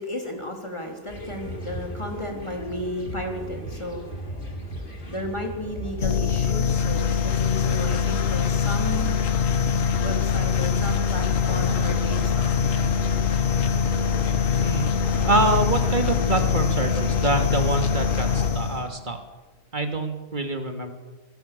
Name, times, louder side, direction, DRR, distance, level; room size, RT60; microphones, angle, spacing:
voice 1, 0.0-4.0 4.8-9.2 10.0-12.5, left 1 dB, 20° left, 2 dB, 3.7 m, -33 dB
sound 1, 1.1-18.5, equal, 40° left, 3.7 m, -36 dB
sound 2, 6.0-19.0, left 7 dB, 70° left, 1.5 m, -23 dB
voice 2, 14.6-14.9 15.2-19.2 19.7-20.9, right 2 dB, 35° right, 6 dB, 2.8 m, -25 dB
25.0 x 20.0 x 7.0 m, 1.2 s
omnidirectional pair, 1.4 m